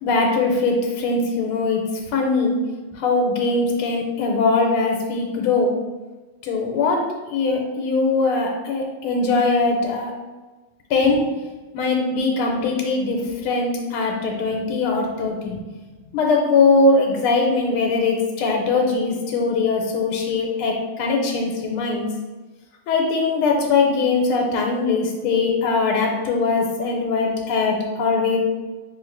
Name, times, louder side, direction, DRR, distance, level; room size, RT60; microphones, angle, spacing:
voice 1, 0.0-1.8 2.1-2.5 3.0-5.7 6.4-7.0 7.3-10.1 10.9-11.2 11.7-13.2 13.4-15.5 16.1-20.7 21.0-22.1 22.9-28.4, left 3 dB, 90° left, 0 dB, 1.6 m, -21 dB
3.5 x 3.1 x 3.8 m, 1.2 s
omnidirectional pair, 2.3 m